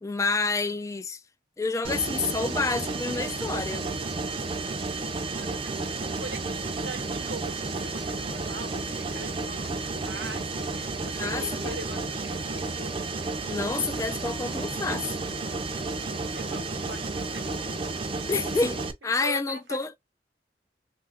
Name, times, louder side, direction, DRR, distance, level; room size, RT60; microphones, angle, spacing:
voice 1, 0.0-1.2 1.6-3.9 11.2-11.8 13.5-15.2 18.3-19.9, left 3 dB, 20° left, 0.3 m, -29 dB
Mechanisms, 1.8-18.9, right 3 dB, 30° right, 0.6 m, -32 dB
voice 2, 5.3-13.1 16.3-17.7 19.0-20.0, right 2 dB, 80° right, 0.9 m, -42 dB
2.9 x 2.5 x 3.4 m
head